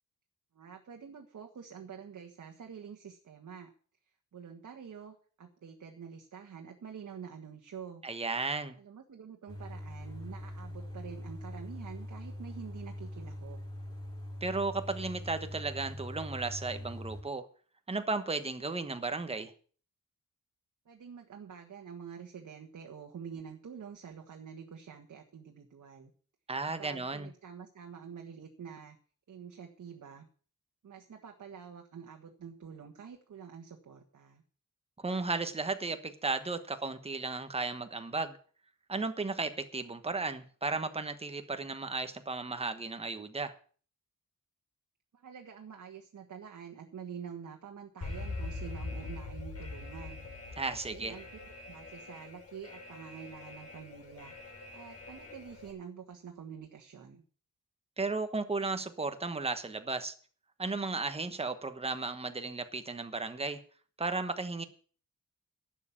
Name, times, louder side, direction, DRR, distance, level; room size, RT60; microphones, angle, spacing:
voice 1, 0.5-3.7 4.3-8.0 8.8-13.6 20.9-26.1 26.8-29.0 29.3-30.3 30.8-34.4 45.1-50.3 50.9-54.3 54.7-57.2, right 7 dB, 65° right, 3 dB, 1.7 m, -47 dB
voice 2, 8.0-8.7 14.4-17.4 17.9-19.5 26.5-27.3 35.0-38.4 38.9-43.5 50.6-51.1 58.0-60.1 60.6-63.6 64.0-64.6, right 3 dB, 20° right, 8 dB, 1.2 m, -34 dB
sound 1, 9.5-17.2, left 1 dB, 15° left, 5.1 m, -43 dB
Alarm, 48.0-55.7, left 3 dB, 45° left, 5.6 m, -43 dB
11.5 x 7.6 x 8.6 m, 0.43 s
wide cardioid pair, 160°, 32 cm